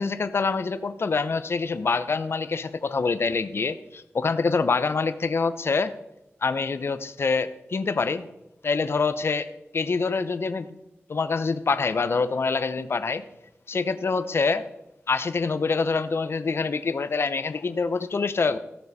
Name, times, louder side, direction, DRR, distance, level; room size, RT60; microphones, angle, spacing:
voice 1, 0.0-5.9 6.4-8.3 8.6-10.7 11.1-13.2 13.7-14.7 15.1-18.6, left 4 dB, 60° left, 13 dB, 0.7 m, -25 dB
15.5 x 6.7 x 4.1 m, 0.91 s
wide cardioid pair, 80°, 5 cm